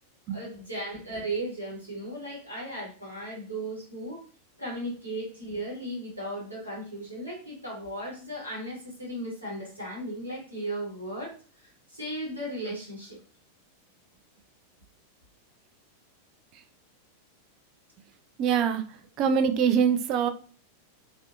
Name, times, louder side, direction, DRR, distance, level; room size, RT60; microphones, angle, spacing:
voice 1, 0.3-4.2 4.6-13.2, right 1 dB, 85° right, 1.0 m, -36 dB
voice 2, 18.4-18.8 19.2-20.3, right 7 dB, 40° right, 0.3 m, -23 dB
2.6 x 2.1 x 2.4 m
figure-of-eight pair, 90°, 0 cm